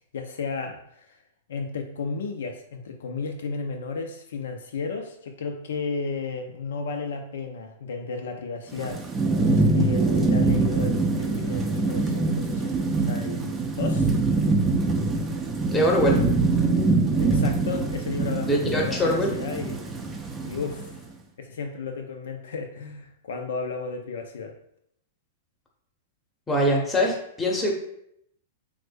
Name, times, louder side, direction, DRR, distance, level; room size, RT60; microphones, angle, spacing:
voice 1, 0.1-1.2 1.5-9.1 9.4-12.8 13.0-14.1 17.2-19.9 20.4-21.0 21.4-24.6, left 4 dB, 75° left, 4 dB, 0.3 m, -33 dB
Thunderstorm / Rain, 8.7-21.0, right 3 dB, 20° right, 0.4 m, -24 dB
voice 2, 15.7-16.2 18.5-19.3 26.5-27.7, equal, 15° left, 0 dB, 0.8 m, -23 dB
3.1 x 2.0 x 3.4 m, 0.73 s
hypercardioid pair, 115°, 0 cm